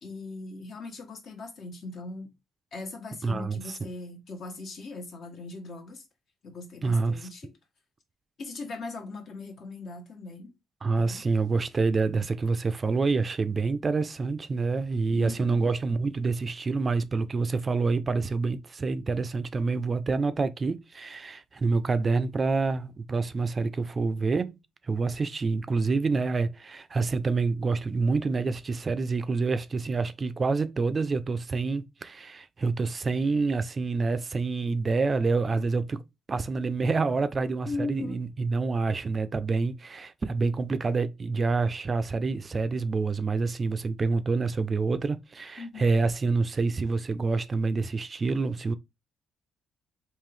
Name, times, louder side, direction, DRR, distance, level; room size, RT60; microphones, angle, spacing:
voice 1, 0.0-2.3 2.7-6.0 6.4-7.5 8.4-10.5 10.9-11.2 15.1-15.7 37.6-38.2 45.6-45.9, left 3 dB, 60° left, 1.2 m, -39 dB
voice 2, 3.2-3.8 6.8-7.3 10.8-24.6 24.8-36.0 36.3-48.7, right 4 dB, 35° right, 0.4 m, -27 dB
3.7 x 2.6 x 3.2 m
cardioid pair, 90°, 0 cm